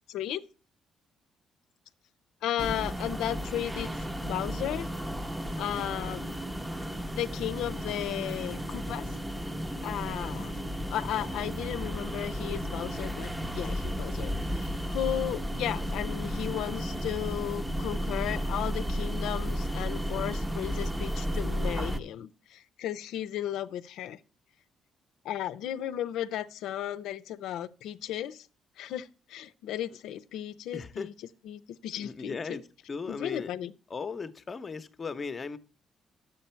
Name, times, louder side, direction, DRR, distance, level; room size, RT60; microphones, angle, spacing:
voice 1, 0.1-0.4 2.4-3.9 4.2-4.9 5.6-6.3 7.1-9.1 9.8-10.6 10.9-24.2 25.2-28.5 28.8-31.1 31.4-32.6 33.1-33.7, left 11 dB, 85° left, 0.6 m, -35 dB
sound 1, 2.6-22.0, equal, 10° right, 0.8 m, -33 dB
voice 2, 30.7-31.1 31.9-32.6 32.9-33.5 33.9-35.6, left 5 dB, 35° left, 0.8 m, -37 dB
10.5 x 7.7 x 4.4 m
cardioid pair, 90°, 0 cm